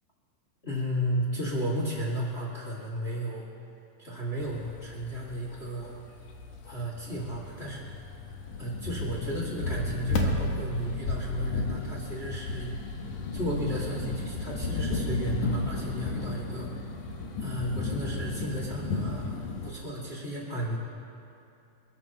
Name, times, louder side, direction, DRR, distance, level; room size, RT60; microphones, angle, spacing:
voice 1, 0.6-3.5 4.0-6.0 6.6-7.9 8.6-12.7 13.3-16.9 17.4-20.8, equal, 25° left, -3 dB, 1.3 m, -33 dB
sound 1, 4.4-19.7, left 2 dB, 60° left, 2.1 m, -33 dB
26.5 x 14.0 x 3.0 m, 2.7 s
omnidirectional pair, 4.8 m